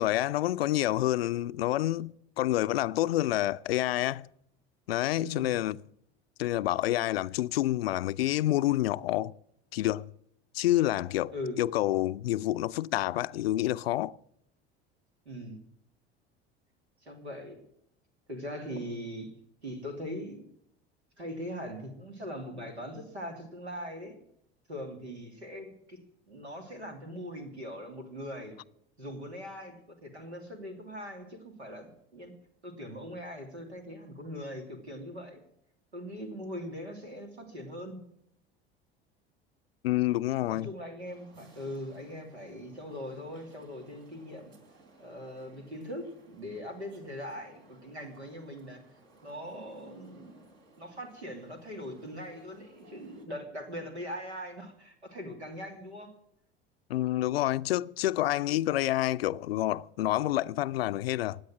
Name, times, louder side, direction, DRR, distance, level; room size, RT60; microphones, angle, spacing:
voice 1, 0.0-4.3 4.9-5.8 6.4-9.3 9.7-10.1 10.5-14.2 39.8-40.7 56.9-61.4, left 15 dB, 65° left, 0.5 m, -28 dB
voice 2, 5.2-5.5 11.3-11.6 15.2-15.6 17.0-17.6 18.3-19.3 19.6-20.4 21.2-24.1 24.7-26.0 26.3-28.6 29.0-29.7 30.0-32.3 32.6-35.4 35.9-38.0 40.5-44.5 45.0-48.8 49.2-56.1, equal, 80° right, 3.0 m, -41 dB
sound 1, 41.0-53.3, right 1 dB, 55° right, 3.7 m, -59 dB
17.0 x 9.8 x 7.5 m
figure-of-eight pair, 65°, 32 cm